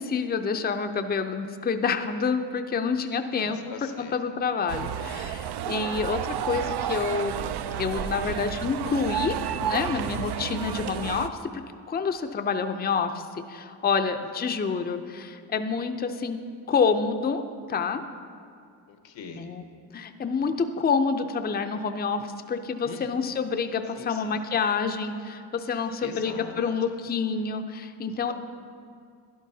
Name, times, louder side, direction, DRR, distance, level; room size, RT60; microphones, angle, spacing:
voice 1, 0.0-3.6 4.0-7.4 7.8-11.4 11.9-16.4 16.7-17.4 17.7-18.0 19.4-19.6 19.9-28.3, left 5 dB, 20° left, 7 dB, 0.5 m, -28 dB
voice 2, 3.4-4.2 18.9-19.5 22.8-23.4 24.0-24.4 25.7-27.0 28.1-28.3, left 5 dB, 85° left, 6 dB, 1.0 m, -43 dB
sound 1, 4.7-11.3, right 9 dB, 60° right, 0.5 m, -31 dB
12.5 x 11.0 x 2.7 m, 2.3 s
cardioid pair, 75°, 45 cm